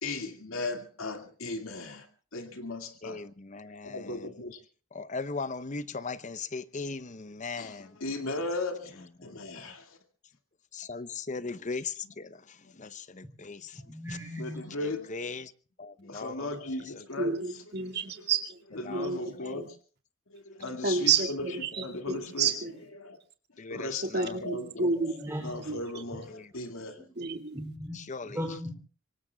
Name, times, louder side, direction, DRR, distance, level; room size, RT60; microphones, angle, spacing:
voice 1, 0.0-2.1 2.3-3.2 3.7-4.6 7.6-10.0 12.6-12.7 14.4-15.1 16.0-18.0 18.7-19.8 20.3-21.5 21.8-22.5 22.9-23.2 23.7-24.9 25.4-27.0, left 2 dB, 85° left, 5 dB, 2.3 m, -37 dB
voice 2, 3.0-4.3 4.9-8.0 9.2-9.7 10.7-13.8 14.8-15.5 15.8-16.5 16.8-17.0 18.8-19.6 20.6-21.1 23.6-24.5 26.3-26.5 27.9-28.4, left 4 dB, 35° left, 15 dB, 0.8 m, -39 dB
voice 3, 13.8-14.7 25.0-25.7 26.9-27.1 27.5-28.8, equal, 10° right, 1 dB, 3.2 m, -38 dB
voice 4, 17.2-18.6 18.9-19.7 20.8-22.7 24.0-25.8 27.2-27.6, right 5 dB, 55° right, 3 dB, 2.3 m, -30 dB
26.0 x 23.5 x 2.3 m, 0.40 s
head